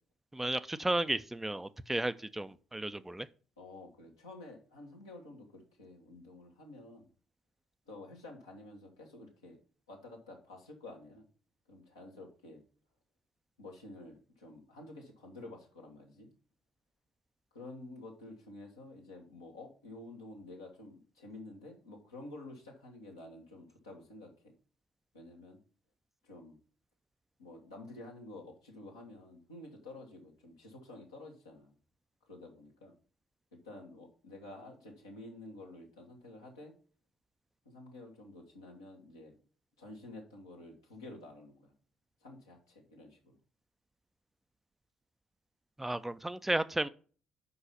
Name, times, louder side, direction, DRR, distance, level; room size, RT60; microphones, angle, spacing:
voice 1, 0.3-3.3 45.8-46.9, right 1 dB, 10° right, 0.4 m, -33 dB
voice 2, 3.6-7.1 7.8-9.6 9.9-11.2 11.7-12.6 13.6-16.3 17.5-24.5 25.1-25.6 26.2-26.6 27.4-31.7 32.3-32.9 33.5-36.7 37.6-39.3 39.8-41.7 42.2-43.4, left 2 dB, 80° left, 1.6 m, -50 dB
5.7 x 5.5 x 5.6 m
figure-of-eight pair, 45°, 2 cm